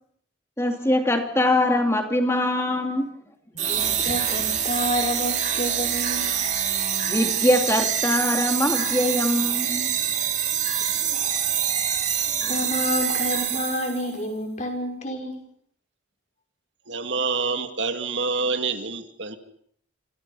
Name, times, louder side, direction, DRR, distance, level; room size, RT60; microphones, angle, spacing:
voice 1, 0.6-3.1 7.1-9.9, left 1 dB, 15° left, 4 dB, 2.7 m, -22 dB
voice 2, 3.6-6.3 10.8-11.4 12.1-15.4, left 1 dB, 35° left, 3 dB, 5.5 m, -29 dB
sound 1, 3.6-14.1, right 9 dB, 35° right, 2.6 m, -25 dB
voice 3, 16.9-19.4, right 4 dB, 70° right, 7 dB, 2.3 m, -27 dB
27.5 x 27.0 x 5.6 m, 0.66 s
head